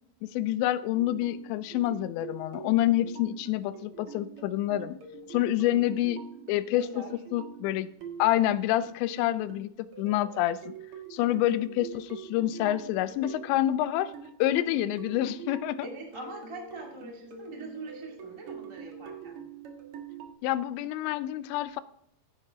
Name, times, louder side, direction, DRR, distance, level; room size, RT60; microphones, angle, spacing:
voice 1, 0.2-5.0 5.3-6.2 6.5-7.0 7.3-7.9 8.2-10.7 11.1-14.1 14.4-15.9 20.4-21.8, left 13 dB, 90° left, 14 dB, 2.9 m, -27 dB
sound 1, 0.9-20.3, right 6 dB, 65° right, 1.4 m, -45 dB
voice 2, 6.7-7.1 15.8-19.4, right 2 dB, 25° right, -1 dB, 0.6 m, -42 dB
15.0 x 8.4 x 3.7 m, 0.71 s
omnidirectional pair, 5.0 m